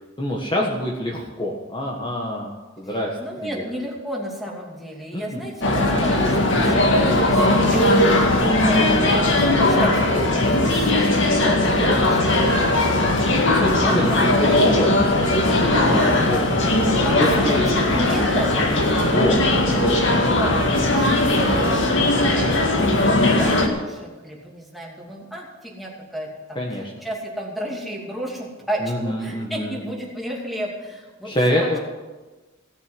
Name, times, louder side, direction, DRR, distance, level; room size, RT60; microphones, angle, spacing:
voice 1, 0.2-3.6 5.1-5.4 13.5-16.0 16.3-16.4 17.2-17.8 18.7-19.4 19.8-20.1 26.5-26.9 28.8-29.8 31.2-31.8, equal, 25° left, -2 dB, 1.5 m, -26 dB
voice 2, 2.9-13.6 13.8-14.6 15.7-16.2 17.0-18.7 20.3-26.6 27.0-31.7, equal, ahead, -2 dB, 2.7 m, -32 dB
sound 1, 5.6-23.7, left 1 dB, 65° left, 2.0 m, -18 dB
17.0 x 6.9 x 9.8 m, 1.2 s
head